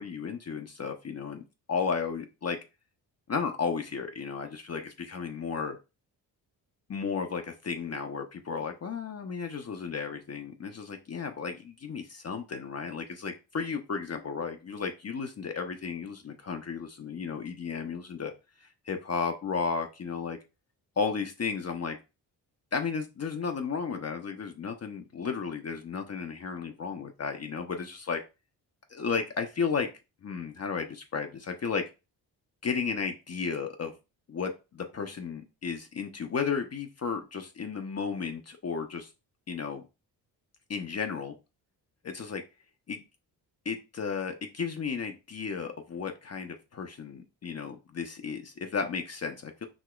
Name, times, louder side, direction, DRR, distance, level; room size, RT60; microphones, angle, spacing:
voice 1, 0.0-1.4 1.7-2.6 3.3-5.8 6.9-18.3 18.6-20.4 21.0-22.0 22.7-28.2 28.9-29.9 30.2-31.8 32.6-33.9 34.3-39.1 39.5-39.8 40.7-41.3 42.0-42.4 42.9-43.0 43.6-49.7, left 5 dB, 30° left, 5 dB, 0.6 m, -33 dB
5.0 x 2.8 x 2.3 m, 0.29 s
hypercardioid pair, 40°, 49 cm